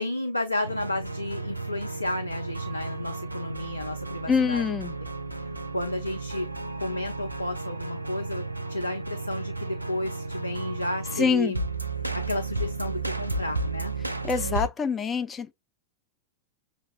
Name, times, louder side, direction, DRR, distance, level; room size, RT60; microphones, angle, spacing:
voice 1, 0.0-4.6 5.4-6.5 6.8-8.4 8.7-11.6 12.1-13.9, left 2 dB, 85° left, 0.4 m, -32 dB
sound 1, 0.6-14.7, right 3 dB, 85° right, 0.3 m, -33 dB
voice 2, 4.3-4.9 11.2-11.6 14.2-15.5, left 6 dB, 20° left, 0.4 m, -25 dB
5.7 x 2.9 x 2.3 m
figure-of-eight pair, 90°, 0 cm